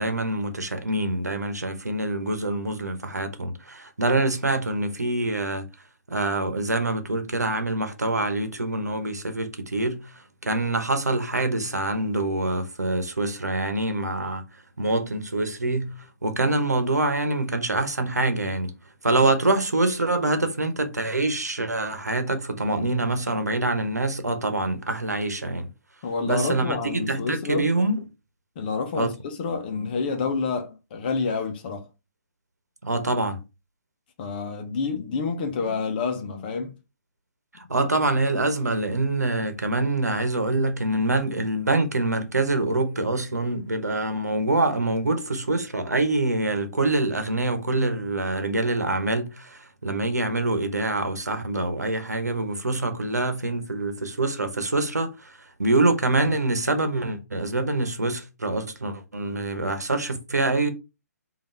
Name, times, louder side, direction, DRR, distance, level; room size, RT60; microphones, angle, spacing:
voice 1, 0.0-5.7 6.1-14.4 14.8-15.9 16.2-18.7 19.0-25.7 26.2-28.0 28.9-29.1 32.8-33.4 37.5-55.3 55.6-60.7, right 2 dB, 75° right, 1.1 m, -25 dB
voice 2, 26.0-27.7 28.6-31.8 34.2-36.7, left 4 dB, 35° left, 1.0 m, -28 dB
5.4 x 2.8 x 3.4 m
figure-of-eight pair, 130°, 9 cm